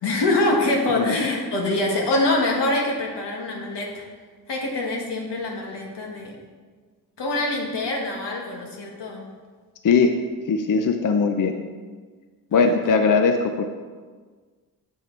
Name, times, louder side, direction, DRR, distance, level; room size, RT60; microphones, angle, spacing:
voice 1, 0.0-4.0 4.5-6.4 7.2-9.3 12.5-12.9, left 2 dB, 90° left, -1 dB, 1.4 m, -25 dB
voice 2, 9.8-10.2 10.5-11.6 12.5-13.6, left 5 dB, 50° left, 6 dB, 0.6 m, -20 dB
7.4 x 5.6 x 4.4 m, 1.5 s
cardioid pair, 60°, 40 cm